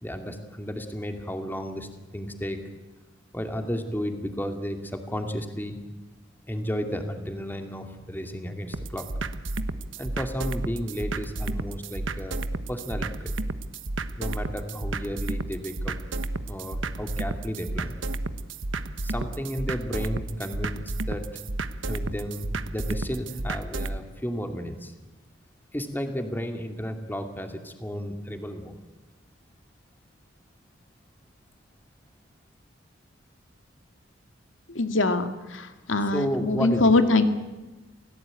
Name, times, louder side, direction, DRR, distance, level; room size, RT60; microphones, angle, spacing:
voice 1, 0.0-2.6 3.3-5.8 6.5-9.1 10.0-12.4 12.7-13.3 14.2-16.0 16.5-18.0 19.0-20.8 21.1-21.4 21.9-24.9 25.7-28.8 36.1-37.1, equal, 10° left, 5 dB, 2.5 m, -33 dB
sound 1, 8.7-24.0, right 2 dB, 80° right, 1.2 m, -32 dB
voice 2, 34.7-37.2, left 2 dB, 85° left, 8 dB, 2.1 m, -23 dB
28.5 x 17.5 x 9.1 m, 1.2 s
head